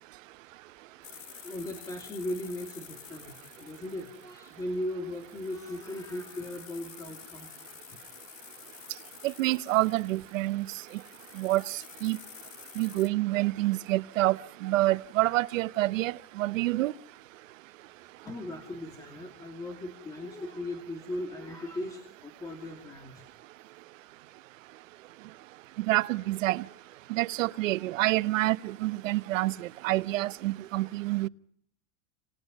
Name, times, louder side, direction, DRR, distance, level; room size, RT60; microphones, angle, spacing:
sound 1, 1.0-13.1, left 14 dB, 70° left, 1.8 m, -50 dB
voice 1, 1.4-7.6 18.2-23.2, left 1 dB, 10° left, 2.7 m, -38 dB
voice 2, 9.2-10.7 11.4-12.2 12.8-16.9 25.9-26.6 27.1-31.3, right 17 dB, 75° right, 1.0 m, -27 dB
28.5 x 28.0 x 5.4 m
supercardioid pair, 180°, 39 cm